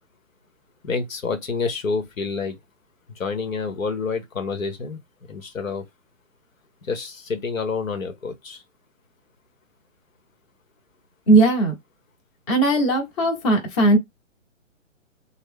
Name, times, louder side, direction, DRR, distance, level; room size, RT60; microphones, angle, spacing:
voice 1, 0.8-2.6 3.2-5.0 5.3-5.8 6.8-8.6, left 4 dB, 80° left, 1.0 m, -28 dB
voice 2, 11.3-11.7 12.5-14.0, right 2 dB, 20° left, 0.9 m, -18 dB
3.2 x 2.0 x 3.5 m
hypercardioid pair, 145°, 39 cm